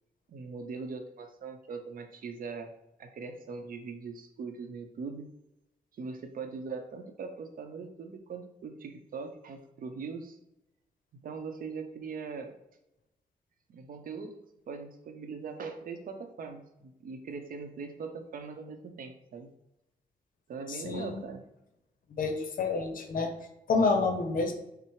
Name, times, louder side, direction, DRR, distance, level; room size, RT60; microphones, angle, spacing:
voice 1, 0.3-2.7 3.0-5.3 6.0-10.4 11.2-12.5 13.7-14.3 14.7-19.5 20.5-21.4, right 5 dB, 70° right, 7 dB, 0.6 m, -41 dB
voice 2, 20.7-21.2 22.1-23.3 23.7-24.5, left 4 dB, 70° left, 5 dB, 0.7 m, -28 dB
5.7 x 2.0 x 4.6 m, 0.88 s
cardioid pair, 70°, 15 cm